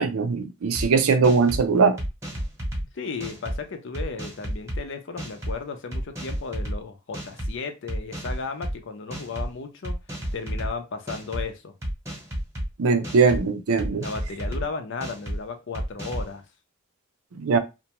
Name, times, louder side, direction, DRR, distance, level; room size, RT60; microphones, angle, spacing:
voice 1, 0.0-2.0 12.8-14.0 17.4-17.6, right 4 dB, 80° right, 0.5 m, -20 dB
sound 1, 0.7-0.9 1.2-1.6 2.0-2.8 3.2-3.6 3.9-4.8 5.2-5.5 5.9-6.8 7.1-7.5 7.9-8.7 9.1-9.5 9.8-10.7 11.1-11.4 11.8-12.7 13.0-13.4 13.8-14.6 15.0-15.4 15.7-16.3, equal, 15° right, 0.9 m, -31 dB
voice 2, 2.9-10.0 10.3-11.7 13.9-16.4, left 4 dB, 60° left, 0.5 m, -34 dB
2.5 x 2.1 x 2.9 m
head